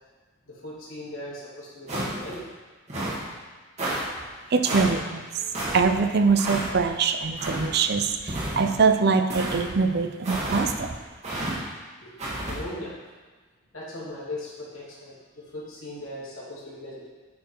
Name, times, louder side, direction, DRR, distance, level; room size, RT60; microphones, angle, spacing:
voice 1, 0.5-2.4 12.0-12.9 13.7-17.1, left 1 dB, 75° left, -7 dB, 2.6 m, -39 dB
sound 1, 1.9-2.4 2.9-3.2 3.8-4.0 4.6-5.0 5.5-5.8 6.4-6.7 7.4-7.7 8.3-8.8 9.3-9.6 10.2-10.7 11.2-11.5 12.2-12.6, right 1 dB, 35° right, 1.7 m, -30 dB
voice 2, 4.5-5.5 5.7-10.9, right 5 dB, 50° right, 7 dB, 0.5 m, -23 dB
9.3 x 4.7 x 4.6 m, 1.4 s
head